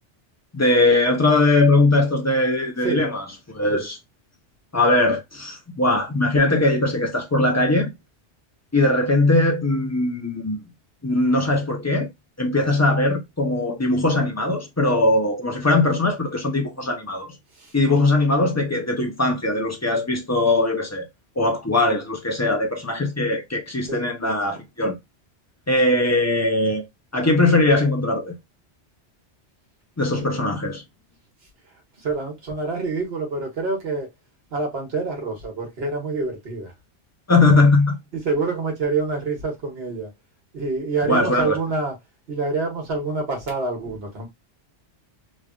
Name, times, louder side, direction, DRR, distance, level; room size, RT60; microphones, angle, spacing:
voice 1, 0.5-4.0 4.7-7.9 8.7-10.6 11.0-12.1 12.4-17.4 17.7-21.1 21.4-25.0 25.7-26.8 27.1-28.4 30.0-30.8 37.3-38.0 41.1-41.6, left 2 dB, 25° left, 0.3 m, -20 dB
voice 2, 32.0-34.1 34.5-36.7 38.1-40.1 40.5-41.9 42.3-44.3, right 3 dB, 60° right, 1.3 m, -26 dB
3.1 x 2.4 x 2.2 m
omnidirectional pair, 1.2 m